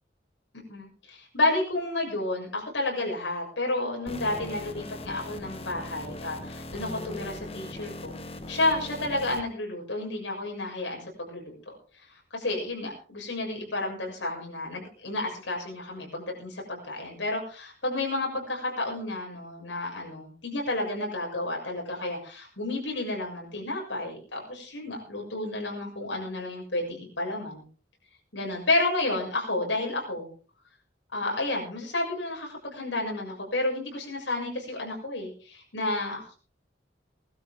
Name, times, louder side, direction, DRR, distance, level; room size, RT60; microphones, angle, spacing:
voice 1, 0.5-8.2 8.5-11.5 12.3-27.6 28.3-30.3 31.1-36.2, left 2 dB, 90° left, 0 dB, 6.6 m, -31 dB
sound 1, 4.1-9.4, left 1 dB, 30° left, 1.1 m, -40 dB
20.0 x 12.5 x 3.7 m, 0.38 s
head